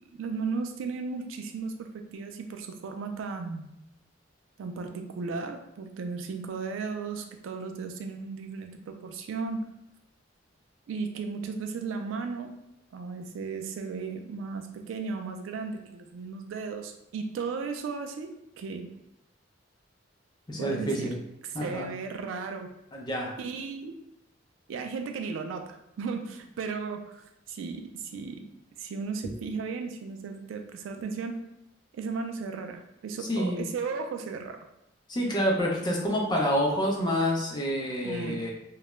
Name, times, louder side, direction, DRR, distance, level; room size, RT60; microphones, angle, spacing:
voice 1, 0.1-3.7 4.6-9.7 10.9-12.5 12.9-18.3 18.6-18.9 20.6-21.1 21.4-22.7 23.4-24.0 24.7-28.4 28.8-31.4 31.9-34.6 38.0-38.4, right 4 dB, 80° right, 6 dB, 0.3 m, -35 dB
voice 2, 20.5-21.2 21.5-21.8 22.9-23.3 33.3-33.6 35.1-38.5, equal, 20° left, -2 dB, 0.5 m, -28 dB
2.2 x 2.0 x 3.0 m, 0.83 s
head